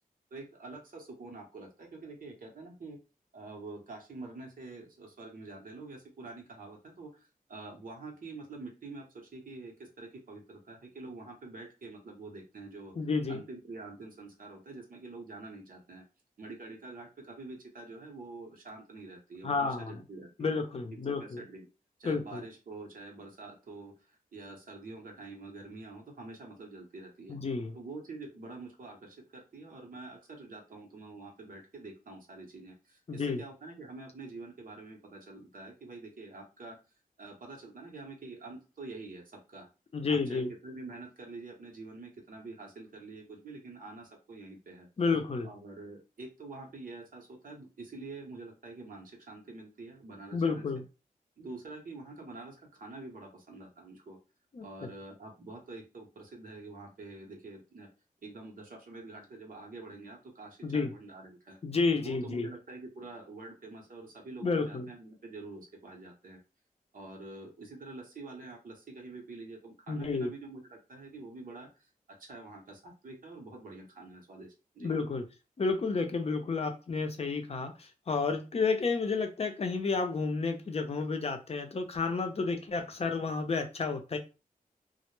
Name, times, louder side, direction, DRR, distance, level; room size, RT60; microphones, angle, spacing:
voice 1, 0.3-3.0 3.3-12.9 13.3-16.0 16.4-20.6 20.9-21.7 22.0-27.4 27.7-36.8 37.2-39.7 40.1-44.9 45.4-50.7 51.4-54.2 54.6-57.9 58.2-61.6 62.0-66.4 66.9-71.9 72.2-75.0 82.4-82.6, right 3 dB, 65° right, 1 dB, 0.7 m, -46 dB
voice 2, 13.0-13.4 19.4-19.9 20.4-21.4 22.0-22.4 27.3-27.8 33.1-33.4 39.9-40.5 45.0-45.5 50.3-50.8 54.5-54.9 60.6-60.9 61.6-62.5 64.4-64.9 69.9-70.3 74.8-75.2 75.6-84.2, left 4 dB, 40° left, 6 dB, 0.5 m, -31 dB
2.1 x 2.0 x 3.0 m, 0.31 s
wide cardioid pair, 75°, 15 cm